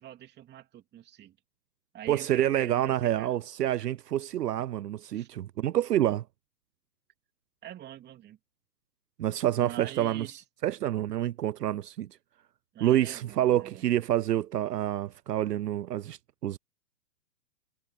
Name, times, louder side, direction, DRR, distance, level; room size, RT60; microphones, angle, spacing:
voice 1, 0.0-1.4 1.9-3.3 5.1-5.3 7.6-8.4 9.6-10.4 12.7-13.8, right 11 dB, 20° right, 3.1 m, -44 dB
voice 2, 2.1-6.2 9.2-10.3 10.6-12.1 12.8-16.6, right 12 dB, 70° right, 0.7 m, -27 dB
hypercardioid pair, 120°, 49 cm